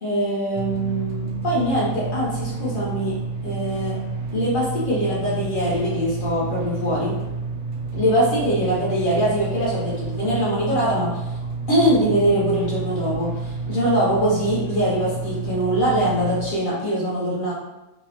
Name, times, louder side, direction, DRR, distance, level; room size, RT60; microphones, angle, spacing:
voice 1, 0.0-3.1 3.4-4.0 4.3-7.2 7.9-11.2 11.7-17.5, equal, 50° left, -7 dB, 0.6 m, -22 dB
sound 1, 0.5-16.5, right 4 dB, 75° right, 1.0 m, -30 dB
2.7 x 2.0 x 2.9 m, 1.0 s
omnidirectional pair, 1.7 m